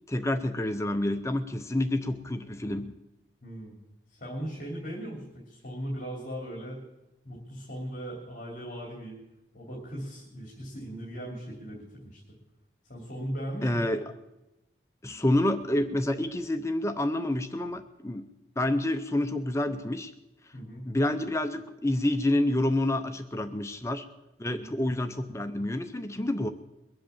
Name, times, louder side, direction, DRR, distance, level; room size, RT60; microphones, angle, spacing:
voice 1, 0.1-2.9 13.6-14.1 15.0-18.3 18.6-20.1 20.4-20.5 20.9-24.1 24.4-26.5, left 1 dB, 15° left, 8 dB, 0.6 m, -28 dB
voice 2, 3.4-3.7 4.1-6.8 7.2-9.2 9.5-12.2 12.9-14.0 20.5-20.8 24.5-24.7, equal, 45° left, -2 dB, 3.0 m, -38 dB
22.0 x 7.8 x 7.2 m, 0.96 s
head